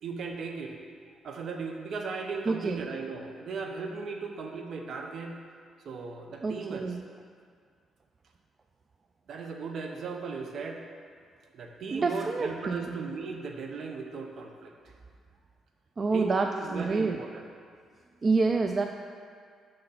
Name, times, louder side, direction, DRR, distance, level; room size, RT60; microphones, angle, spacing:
voice 1, 0.0-0.8 1.2-5.4 5.8-7.0 9.3-10.8 11.5-14.7 16.1-17.5, right 4 dB, 60° right, 3 dB, 0.7 m, -37 dB
voice 2, 2.5-2.8 6.4-7.0 11.9-13.0 16.0-17.2 18.2-18.9, right 4 dB, 35° right, 4 dB, 0.3 m, -27 dB
6.5 x 4.0 x 5.6 m, 2.1 s
cardioid pair, 90°, 0 cm